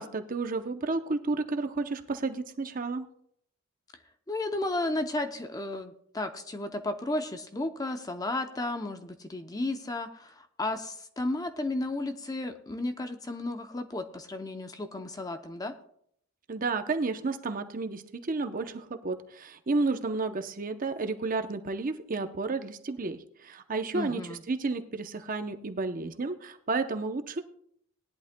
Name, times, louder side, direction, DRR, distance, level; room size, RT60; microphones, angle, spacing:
voice 1, 0.0-3.1 16.5-27.4, right 3 dB, 40° right, 8 dB, 0.7 m, -32 dB
voice 2, 4.3-15.7 23.9-24.4, left 2 dB, 15° left, 7 dB, 0.6 m, -33 dB
19.5 x 11.0 x 2.2 m, 0.68 s
head